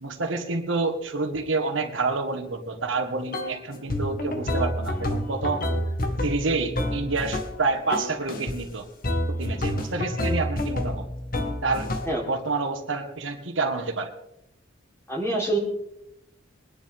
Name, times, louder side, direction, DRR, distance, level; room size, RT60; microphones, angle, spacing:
voice 1, 0.0-5.7 6.2-8.9 9.3-11.1 11.6-11.9 12.3-14.1, right 3 dB, 70° right, 4 dB, 1.7 m, -28 dB
sound 1, 3.3-3.6 3.9-7.6 7.9-8.6 9.0-12.2, left 1 dB, 45° left, 1.6 m, -28 dB
voice 2, 15.1-15.6, right 2 dB, 15° left, -2 dB, 3.7 m, -25 dB
23.0 x 10.5 x 3.7 m, 0.83 s
head